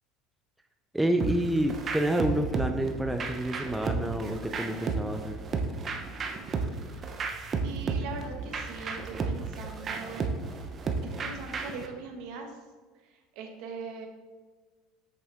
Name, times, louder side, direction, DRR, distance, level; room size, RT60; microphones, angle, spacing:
voice 1, 0.9-5.4, right 1 dB, 5° right, 5 dB, 0.4 m, -28 dB
sound 1, 1.2-11.9, right 4 dB, 30° right, 0.8 m, -33 dB
voice 2, 7.6-10.3 11.1-12.6 13.0-14.1, right 4 dB, 65° right, 2 dB, 1.5 m, -41 dB
7.9 x 7.0 x 3.5 m, 1.4 s
cardioid pair, 145°, 0 cm